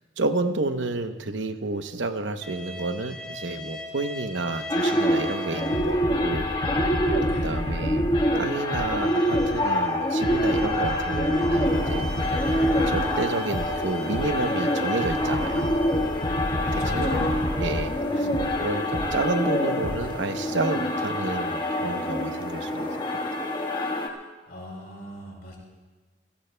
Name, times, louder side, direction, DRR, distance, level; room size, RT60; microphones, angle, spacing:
voice 1, 0.2-6.5 7.4-12.1 12.3-12.5 12.9-15.7 16.7-17.3 17.6-18.3 18.6-23.2, right 3 dB, 70° right, 8 dB, 0.8 m, -30 dB
sound 1, 2.4-6.0 6.4-6.6 7.2-7.3 8.6-16.3, equal, 5° left, 4.0 m, -41 dB
sound 2, 4.7-24.1, left 1 dB, 25° left, 1.5 m, -26 dB
sound 3, 5.7-9.7 10.2-14.5 15.0-19.3 19.8-20.0, equal, 85° left, 2.2 m, -31 dB
voice 2, 7.3-7.6 16.6-17.4 18.1-18.5 24.5-25.6, equal, 55° left, -2 dB, 5.3 m, -41 dB
27.0 x 17.5 x 2.2 m, 1.2 s
head